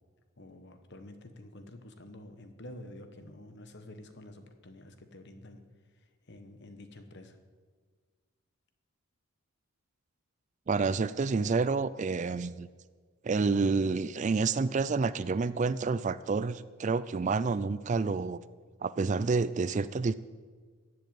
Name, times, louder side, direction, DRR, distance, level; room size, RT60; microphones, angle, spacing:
voice 1, 0.4-5.6 5.9-7.4, left 1 dB, 50° left, 8 dB, 1.2 m, -49 dB
voice 2, 10.7-12.7 13.2-18.4 18.8-20.1, right 4 dB, 35° right, 16 dB, 0.3 m, -29 dB
14.5 x 7.9 x 9.2 m, 1.5 s
head